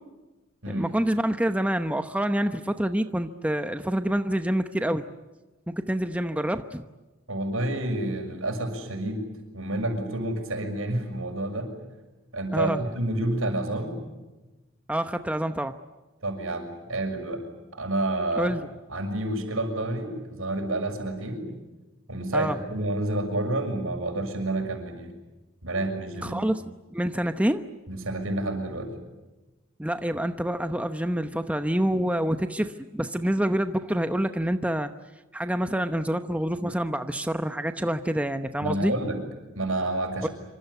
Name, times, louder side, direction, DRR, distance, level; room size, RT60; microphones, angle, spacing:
voice 1, 0.7-5.0 5.7-6.8 12.5-12.8 14.9-15.7 18.4-18.7 22.3-22.6 26.2-26.6 26.9-27.7 29.8-34.9 35.3-38.9 40.2-40.3, right 1 dB, 5° right, 8 dB, 0.9 m, -27 dB
voice 2, 7.3-9.3 9.5-11.7 12.3-14.0 16.2-17.4 17.7-18.5 18.9-21.5 22.1-25.2 25.6-26.5 27.9-28.9 38.6-39.2 39.5-40.3, right 1 dB, 75° right, 5 dB, 6.4 m, -29 dB
26.5 x 26.0 x 8.3 m, 1.1 s
head